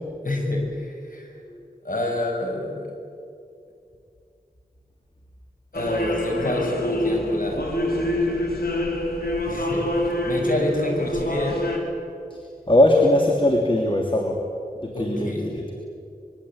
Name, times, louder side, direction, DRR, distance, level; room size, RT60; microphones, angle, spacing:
voice 1, 0.2-1.3 1.8-2.9 5.7-7.9 9.5-9.8 10.2-11.5 14.9-15.5, left 1 dB, 60° left, 0 dB, 6.8 m, -28 dB
sound 1, 5.7-11.8, left 1 dB, 85° left, 4.1 m, -26 dB
voice 2, 12.7-14.4 14.8-15.6, left 1 dB, 35° left, 1 dB, 3.1 m, -20 dB
25.5 x 22.5 x 8.8 m, 2.5 s
wide cardioid pair, 45°, 16 cm